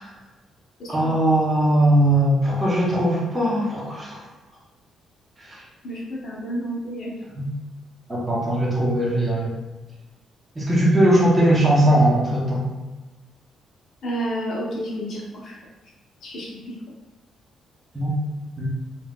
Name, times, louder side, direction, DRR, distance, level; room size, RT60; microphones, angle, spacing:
voice 1, 0.9-4.2 5.4-5.6 7.3-7.5 8.1-9.5 10.5-12.7 17.9-18.1 18.6-18.7, right 1 dB, 15° right, -6 dB, 0.9 m, -19 dB
voice 2, 5.8-7.1 14.0-15.6 16.2-16.8, right 1 dB, 65° left, -4 dB, 0.9 m, -30 dB
3.2 x 2.5 x 2.5 m, 1.2 s
cardioid pair, 90°, 0 cm